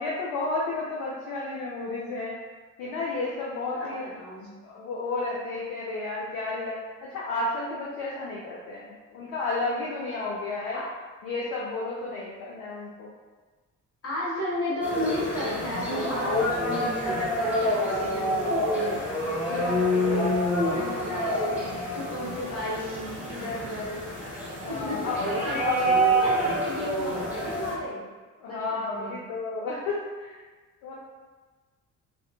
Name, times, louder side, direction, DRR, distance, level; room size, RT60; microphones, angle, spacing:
voice 1, 0.0-2.3 2.8-4.1 4.6-6.8 7.1-10.8 11.2-13.1 24.6-25.2 25.6-25.8 28.4-30.4 30.8-30.9, left 3 dB, 55° left, -5 dB, 0.6 m, -32 dB
voice 2, 3.7-4.5 10.7-10.9 14.0-20.3 20.6-21.7 21.9-24.1 24.7-25.0 25.2-28.0 28.5-29.2, left 1 dB, 30° left, -7 dB, 1.2 m, -34 dB
sound 1, 14.8-27.8, equal, 5° right, 1.0 m, -27 dB
2.5 x 2.5 x 2.3 m, 1.3 s
figure-of-eight pair, 45°, 43 cm